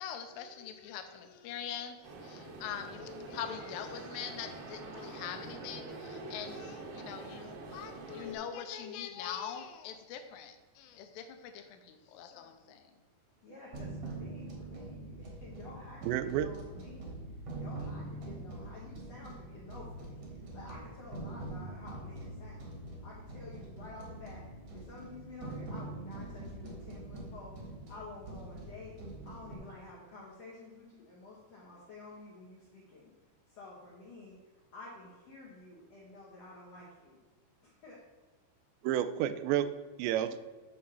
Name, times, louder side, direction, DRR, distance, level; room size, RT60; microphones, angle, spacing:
voice 1, 0.0-13.0, left 8 dB, 85° left, 8 dB, 2.8 m, -43 dB
sound 1, 2.0-8.3, right 3 dB, 70° right, 2.7 m, -45 dB
voice 2, 13.4-22.7 23.0-33.1 33.5-37.2 37.6-38.0, left 3 dB, 65° left, -5 dB, 1.6 m, -51 dB
sound 2, 13.7-29.5, right 2 dB, 55° right, 1.9 m, -44 dB
voice 3, 16.0-16.5 38.8-39.7 40.0-40.4, right 11 dB, 85° right, 12 dB, 2.8 m, -30 dB
8.5 x 4.4 x 6.8 m, 1.2 s
omnidirectional pair, 5.0 m